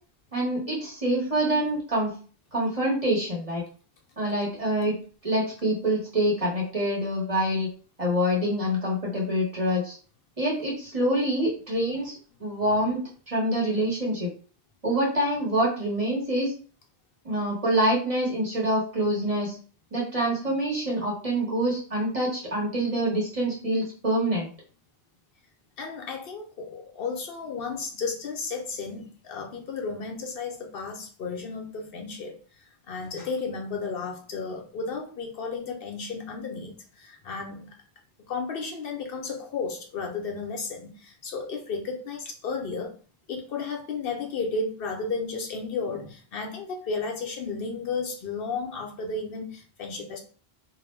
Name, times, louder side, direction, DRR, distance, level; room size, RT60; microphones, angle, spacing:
voice 1, 0.3-2.1 2.5-3.6 4.2-5.0 5.2-7.7 8.0-9.9 10.4-12.1 12.4-13.0 13.3-14.3 14.8-16.5 17.2-19.6 19.9-24.5, right 1 dB, 35° right, -3 dB, 1.0 m, -26 dB
voice 2, 25.8-32.4 32.9-37.7 38.3-42.9 43.3-50.2, left 4 dB, 70° left, 2 dB, 0.8 m, -33 dB
2.4 x 2.1 x 3.1 m, 0.40 s
omnidirectional pair, 1.0 m